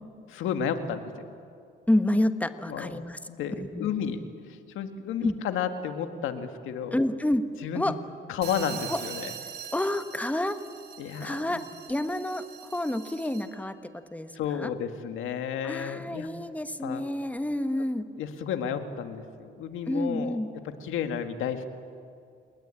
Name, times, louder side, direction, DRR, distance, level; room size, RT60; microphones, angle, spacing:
voice 1, 0.3-1.3 2.7-3.0 3.3-4.2 4.5-7.0 7.6-7.9 8.3-9.3 11.0-11.4 14.4-16.3 16.8-17.0 18.2-20.4 20.8-21.7, left 8 dB, 90° left, 7 dB, 1.9 m, -32 dB
voice 2, 1.9-3.2 3.6-3.9 5.2-5.3 6.9-7.5 7.7-8.0 8.9-9.0 9.7-10.6 11.2-14.3 14.6-14.7 15.6-18.1 19.9-20.5, left 1 dB, 5° left, 9 dB, 1.5 m, -29 dB
sound 1, 8.4-13.6, right 8 dB, 55° right, 2.8 m, -43 dB
29.0 x 20.0 x 9.0 m, 2.4 s
cardioid pair, 90°, 20 cm